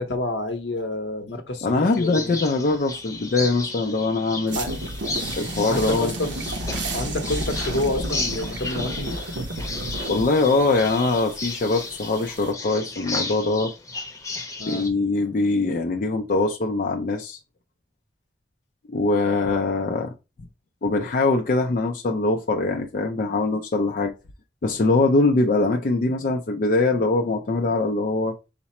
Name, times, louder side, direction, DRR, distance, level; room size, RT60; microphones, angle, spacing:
voice 1, 0.0-1.7 2.0-2.4 4.5-4.7 5.7-6.3 6.9-9.2 14.6-14.9, left 2 dB, 75° left, 0.8 m, -28 dB
voice 2, 1.6-4.6 5.3-6.1 10.1-13.7 14.6-17.4 18.9-20.1 20.8-24.1 24.6-28.4, left 3 dB, 50° left, 0.4 m, -22 dB
sound 1, 1.8-14.9, left 3 dB, 15° left, 0.8 m, -34 dB
sound 2, 4.5-12.5, right 1 dB, 90° right, 0.8 m, -32 dB
5.7 x 2.0 x 4.1 m
head